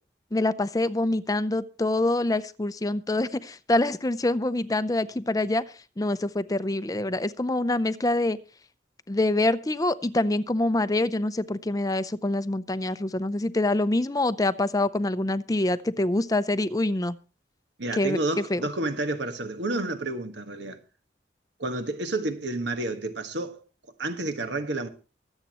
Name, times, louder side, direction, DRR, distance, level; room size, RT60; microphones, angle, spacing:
voice 1, 0.3-5.6 6.0-8.4 9.1-17.2 17.9-18.2 18.5-18.6, left 2 dB, 20° left, 0.5 m, -25 dB
voice 2, 17.8-20.8 21.6-23.6 24.0-24.9, right 2 dB, 75° right, 1.5 m, -30 dB
24.0 x 8.2 x 3.0 m
head